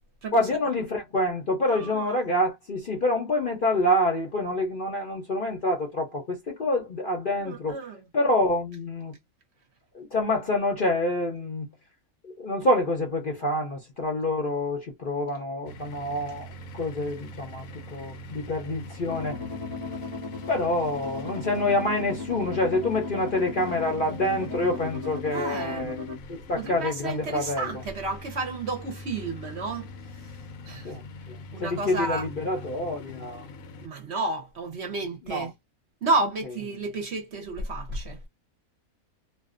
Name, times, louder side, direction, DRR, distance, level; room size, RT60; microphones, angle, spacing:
voice 1, 0.3-7.8 8.1-9.2 9.9-11.7 12.2-19.4 20.5-26.0 26.3-27.8 30.8-33.4 35.2-35.5, left 1 dB, 50° left, 0.7 m, -27 dB
voice 2, 1.6-2.2 7.4-8.0 25.3-25.9 26.5-29.9 30.7-30.9 31.5-32.3 33.8-35.5 36.0-38.2, right 3 dB, 55° right, 0.8 m, -31 dB
sound 1, 15.7-33.9, left 1 dB, 70° left, 0.9 m, -43 dB
sound 2, 19.1-26.2, left 3 dB, 20° right, 0.7 m, -36 dB
2.5 x 2.2 x 2.4 m
omnidirectional pair, 1.6 m